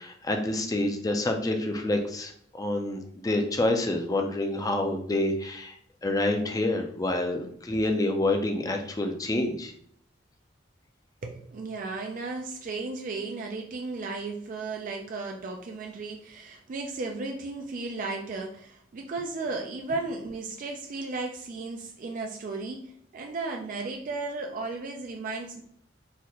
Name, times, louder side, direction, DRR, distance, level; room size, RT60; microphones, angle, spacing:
voice 1, 0.0-5.8 6.0-9.7, left 1 dB, 20° left, 4 dB, 0.4 m, -27 dB
voice 2, 11.2-25.6, right 3 dB, 45° right, 2 dB, 0.3 m, -35 dB
4.0 x 2.4 x 3.0 m, 0.65 s
head